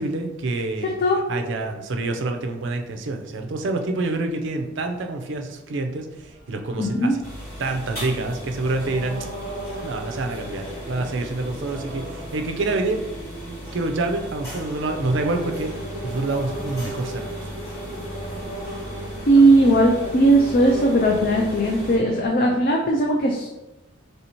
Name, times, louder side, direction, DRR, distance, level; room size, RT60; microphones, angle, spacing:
voice 1, 0.0-0.9 1.3-6.1 6.5-7.2 7.6-9.3 9.8-13.0 13.7-15.7 16.0-17.5, right 2 dB, 60° right, 5 dB, 0.5 m, -27 dB
voice 2, 0.8-1.2 6.8-7.1 19.3-23.5, right 1 dB, 45° left, 0 dB, 0.4 m, -18 dB
sound 1, 6.1-22.3, right 1 dB, 30° right, 1.2 m, -38 dB
sound 2, 7.2-22.0, equal, 10° left, 1.4 m, -36 dB
3.3 x 2.8 x 4.3 m, 1.0 s
head